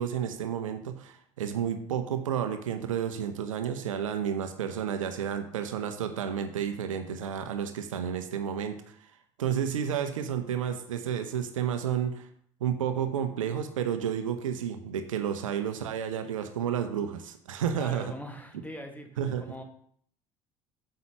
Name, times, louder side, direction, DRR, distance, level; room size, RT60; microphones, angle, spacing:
voice 1, 0.0-9.1 9.4-12.3 12.6-18.1 19.2-19.4, right 8 dB, 70° right, 7 dB, 0.8 m, -31 dB
voice 2, 17.8-19.1 19.4-19.6, equal, 10° left, 4 dB, 1.7 m, -41 dB
9.2 x 7.7 x 3.0 m, 0.63 s
figure-of-eight pair, 65°, 17 cm